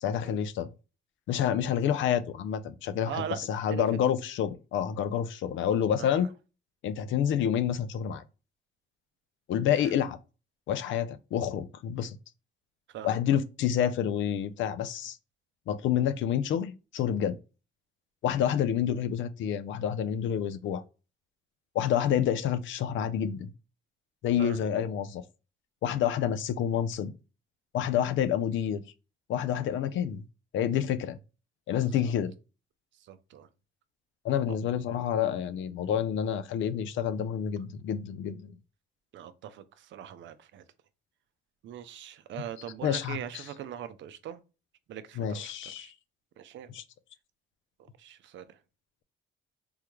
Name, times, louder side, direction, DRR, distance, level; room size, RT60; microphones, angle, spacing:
voice 1, 0.0-0.7 1.3-6.3 6.8-8.2 9.5-10.2 10.7-12.2 13.0-15.2 15.7-17.4 18.2-20.8 21.7-23.5 24.2-25.2 25.8-27.1 27.7-28.8 29.3-30.2 30.5-31.2 31.7-32.3 34.2-38.5 42.8-43.4 45.2-45.9 46.7-46.8, left 9 dB, 75° left, 0.4 m, -28 dB
voice 2, 3.0-3.8 6.0-6.3 12.9-13.2 24.4-24.6 29.5-29.6 31.7-32.1 33.1-33.5 34.5-34.6 39.1-40.6 41.6-44.4 44.9-45.9 46.4-46.7 48.0-48.5, right 10 dB, 70° right, 0.5 m, -41 dB
3.5 x 2.2 x 3.0 m
cardioid pair, 90°, 20 cm